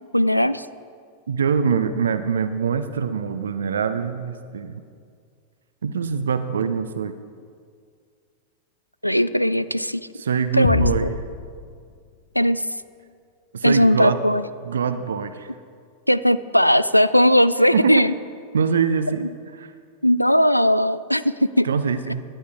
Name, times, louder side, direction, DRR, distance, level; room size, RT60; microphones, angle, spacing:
voice 1, 0.1-0.7 9.0-10.0 10.5-11.1 12.4-12.6 13.6-14.4 16.1-18.1 19.2-19.3 20.0-21.7, equal, 90° left, 16 dB, 0.3 m, -18 dB
voice 2, 1.3-4.8 5.8-7.1 10.1-11.1 13.5-14.2 14.6-15.5 17.7-18.0 18.5-19.2 19.6-19.7 21.6-22.2, right 6 dB, 65° right, 11 dB, 0.6 m, -23 dB
sound 1, 10.6-12.4, left 7 dB, 55° left, 0.7 m, -27 dB
18.0 x 11.0 x 3.6 m, 2.1 s
figure-of-eight pair, 90°, 0 cm